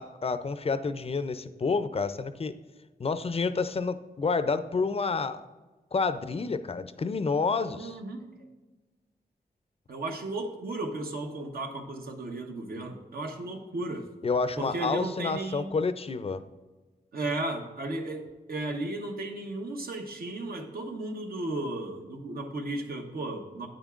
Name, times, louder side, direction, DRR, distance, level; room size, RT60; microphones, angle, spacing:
voice 1, 0.0-2.5 3.0-5.4 5.9-8.0 14.2-16.4, left 4 dB, 40° left, 12 dB, 0.4 m, -29 dB
voice 2, 7.7-8.3 9.9-14.1 14.6-15.7 17.1-23.7, right 2 dB, 75° right, 3 dB, 1.0 m, -35 dB
8.9 x 8.8 x 2.4 m, 1.2 s
wide cardioid pair, 85°, 16 cm